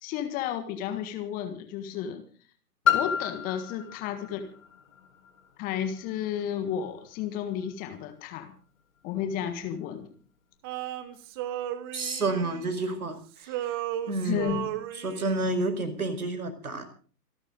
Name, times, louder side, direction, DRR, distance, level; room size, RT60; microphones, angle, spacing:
voice 1, 0.0-2.2 2.9-4.5 5.6-8.5 9.0-10.1 14.2-14.7, left 9 dB, 15° left, 8 dB, 1.6 m, -32 dB
Piano, 2.8-8.3 9.0-9.1, left 9 dB, 55° left, 4.8 m, -32 dB
Male singing, 10.6-13.1 13.4-15.5, right 12 dB, 15° right, 0.8 m, -35 dB
voice 2, 11.9-13.7 14.1-14.6 14.9-17.0, right 2 dB, 65° right, 10 dB, 4.9 m, -30 dB
26.5 x 12.5 x 3.9 m, 0.42 s
figure-of-eight pair, 130°, 48 cm